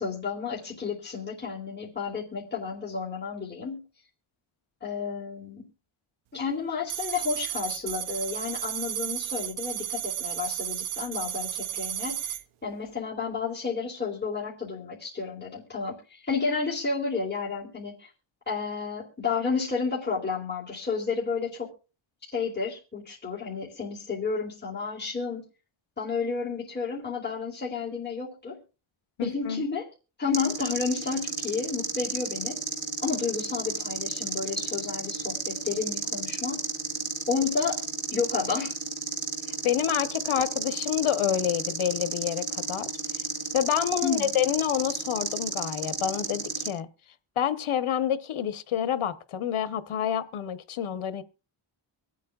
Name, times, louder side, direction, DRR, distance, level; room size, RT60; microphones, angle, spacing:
voice 1, 0.0-3.8 4.8-5.6 6.3-18.1 18.5-21.7 22.3-25.4 26.0-28.6 29.2-29.8 30.2-32.6 33.0-36.6 37.3-37.8 38.1-38.7 44.0-44.3, left 5 dB, 20° left, 2.9 m, -31 dB
sound 1, 6.9-12.4, right 11 dB, 75° right, 0.7 m, -33 dB
voice 2, 29.2-29.6 39.6-43.2 43.5-46.9 47.4-51.2, left 10 dB, 80° left, 1.0 m, -28 dB
sound 2, 30.3-46.7, right 4 dB, 50° right, 2.4 m, -32 dB
24.5 x 8.4 x 2.3 m
wide cardioid pair, 110°, 49 cm